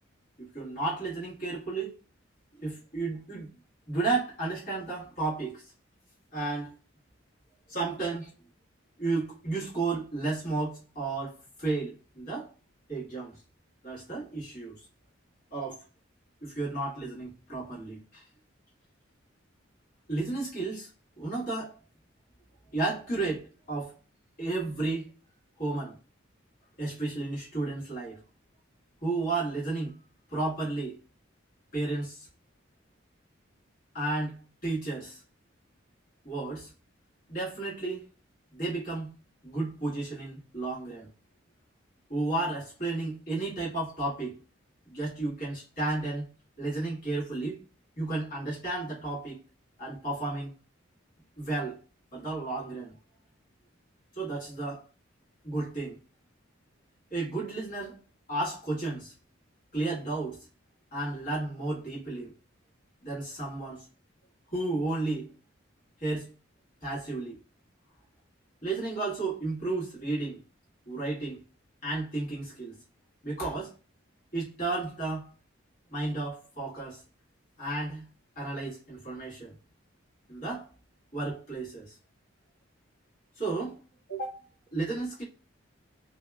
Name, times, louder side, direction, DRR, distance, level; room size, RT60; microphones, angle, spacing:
voice 1, 0.4-1.9 2.6-3.5 3.9-5.6 6.3-6.7 7.7-8.3 9.0-12.5 12.9-13.4 13.8-14.8 15.5-15.8 16.4-18.3 20.1-20.9 21.2-21.8 22.7-23.9 24.4-25.1 25.6-26.0 26.8-28.2 29.0-30.0 30.3-31.0 31.7-32.3 33.9-35.2 36.2-36.7 37.3-38.1 38.5-39.1 39.4-41.1 42.1-44.4 44.9-46.3 46.6-47.6 48.0-49.4 49.8-50.5 51.4-51.8 52.1-52.9 54.1-54.8 55.4-56.0 57.1-58.0 58.3-59.1 59.7-60.5 60.9-62.3 63.0-63.9 64.5-65.3 66.0-66.3 66.8-67.4 68.6-70.4 70.9-71.4 71.8-72.7 73.2-73.7 74.3-75.3 75.9-77.0 77.6-78.1 78.3-79.5 80.3-80.7 81.1-82.0 83.3-83.8 84.1-84.4 84.7-85.2, right 2 dB, 40° left, 1.4 m, -33 dB
2.7 x 2.1 x 2.2 m
head